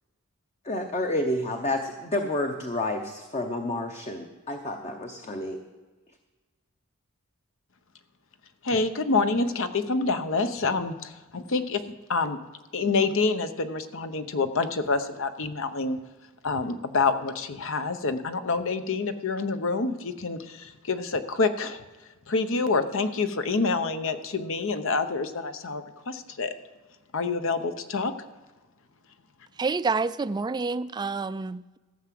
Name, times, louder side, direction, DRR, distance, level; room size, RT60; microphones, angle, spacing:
voice 1, 0.6-5.6, left 1 dB, 30° left, 0.8 m, -30 dB
voice 2, 8.6-12.4 12.7-16.0 16.4-21.8 22.3-26.5 27.1-28.1, left 4 dB, 65° left, 0.9 m, -27 dB
voice 3, 29.6-31.8, right 4 dB, 20° right, 0.3 m, -28 dB
14.5 x 5.9 x 7.6 m
head